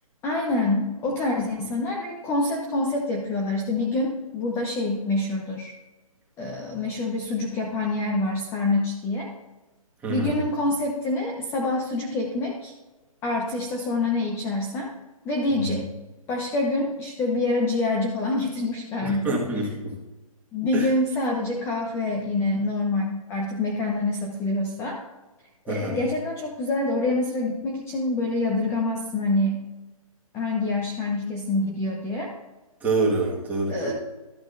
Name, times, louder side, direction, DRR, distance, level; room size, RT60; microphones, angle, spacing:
voice 1, 0.2-5.7 6.4-9.3 10.1-12.7 13.2-14.9 15.2-15.9 16.3-19.3 20.5-25.0 25.7-29.6 30.3-32.3 33.7-33.9, left 2 dB, 15° left, 1 dB, 0.8 m, -26 dB
voice 2, 10.0-10.3 15.6-15.7 19.0-20.0 20.7-20.9 25.7-26.0 32.8-33.9, right 2 dB, 10° right, -4 dB, 1.7 m, -26 dB
13.5 x 6.1 x 2.6 m, 1.2 s
hypercardioid pair, 145°, 19 cm